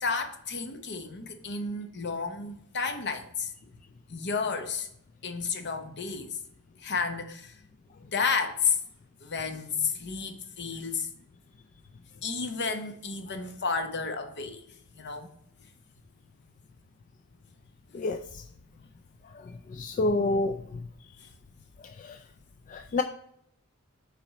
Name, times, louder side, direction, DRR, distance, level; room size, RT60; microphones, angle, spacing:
voice 1, 0.0-3.5 4.1-4.9 5.2-6.4 6.8-7.6 8.0-8.8 9.2-11.1 12.2-14.6 15.0-15.3, left 5 dB, 55° left, 7 dB, 0.9 m, -31 dB
voice 2, 17.9-18.4 19.7-20.8 22.0-22.2 22.7-23.0, left 2 dB, 35° left, 8 dB, 0.3 m, -28 dB
6.0 x 4.2 x 4.9 m, 0.71 s
head